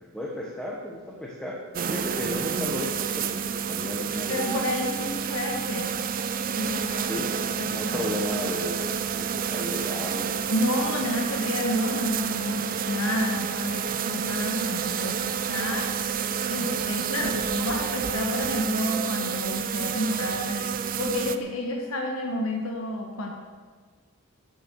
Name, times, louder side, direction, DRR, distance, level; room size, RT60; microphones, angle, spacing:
voice 1, 0.0-1.6 1.9-4.6 5.0-5.2 5.8-5.9 7.1-7.4 7.7-10.4 17.2-17.4, left 1 dB, 5° left, -3 dB, 1.1 m, -34 dB
sound 1, 1.7-21.4, right 7 dB, 40° right, 0.5 m, -30 dB
sound 2, 1.8-21.4, right 5 dB, 75° right, 1.1 m, -38 dB
voice 2, 4.3-5.9 6.6-7.2 7.6-8.2 10.5-23.3, left 1 dB, 75° left, 0 dB, 1.3 m, -30 dB
13.0 x 7.0 x 4.6 m, 1.5 s
head